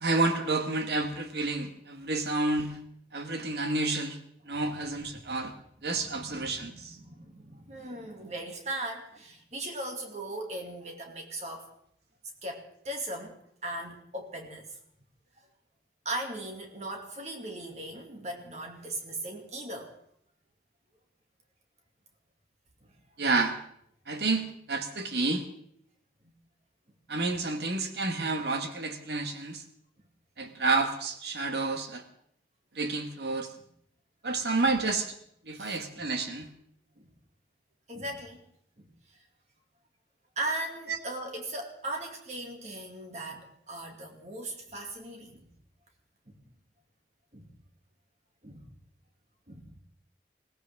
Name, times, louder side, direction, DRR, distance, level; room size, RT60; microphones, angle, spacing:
voice 1, 0.0-2.8 3.1-4.2 4.4-5.5 5.8-7.0 23.2-23.6 24.1-25.4 27.1-29.6 30.4-32.0 32.7-33.5 34.2-35.1 35.4-36.5 40.9-41.0, right 3 dB, 70° right, 6 dB, 1.5 m, -30 dB
voice 2, 4.9-5.3 5.9-11.7 12.4-13.4 13.6-14.7 16.0-19.9 22.8-22.9 34.3-34.4 35.6-36.1 37.0-37.1 37.9-38.4 38.8-38.9 40.4-45.5 46.3-46.4 47.3-47.5 48.4-48.7 49.5-49.8, right 1 dB, 40° right, 2 dB, 2.3 m, -38 dB
21.0 x 17.0 x 3.6 m, 0.69 s
head